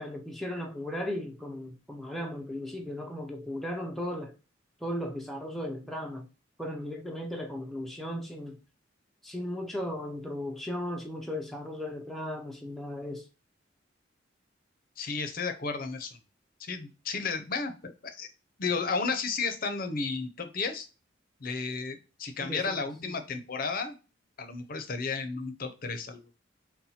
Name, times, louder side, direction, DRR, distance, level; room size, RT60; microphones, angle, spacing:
voice 1, 0.0-4.3 4.8-6.3 6.6-8.6 9.2-13.2 22.4-22.8, left 1 dB, ahead, 0.4 m, -36 dB
voice 2, 15.0-16.2 16.6-18.3 18.6-20.9 21.4-23.9 24.4-26.2, left 4 dB, 45° left, 0.6 m, -33 dB
4.2 x 2.2 x 4.0 m
head